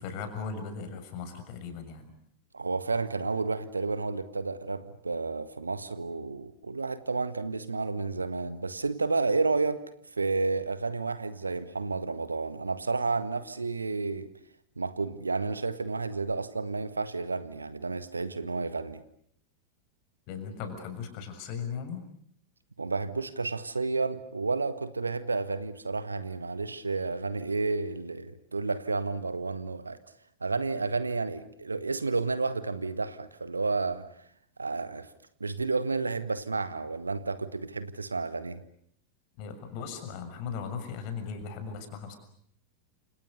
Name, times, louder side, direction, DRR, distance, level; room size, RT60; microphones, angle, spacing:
voice 1, 0.0-2.1 20.3-22.0 39.4-42.2, left 6 dB, 45° left, 8 dB, 6.5 m, -38 dB
voice 2, 2.5-9.8 10.2-14.3 14.8-19.0 22.8-30.0 30.4-34.0 34.6-35.1 35.4-38.6, right 3 dB, 80° right, 13 dB, 1.7 m, -31 dB
29.5 x 27.5 x 6.6 m, 0.68 s
figure-of-eight pair, 90°, 0 cm